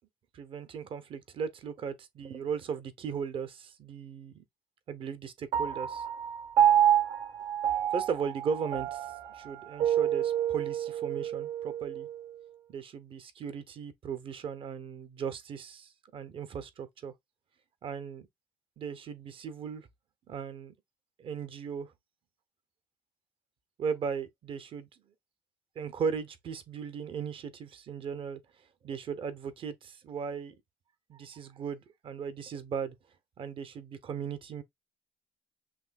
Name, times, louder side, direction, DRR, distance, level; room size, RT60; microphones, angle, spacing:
voice 1, 0.3-4.4 4.9-6.0 7.9-9.1 9.3-12.1 12.7-17.1 17.8-18.3 18.8-19.9 20.3-20.7 21.2-21.9 23.8-24.9 25.8-28.4 28.8-30.6 31.1-32.9 33.4-34.6, right 6 dB, 45° right, 0.9 m, -37 dB
Piano, 5.5-12.2, right 10 dB, 65° right, 1.4 m, -28 dB
6.2 x 2.8 x 2.4 m
cardioid pair, 100°, 12 cm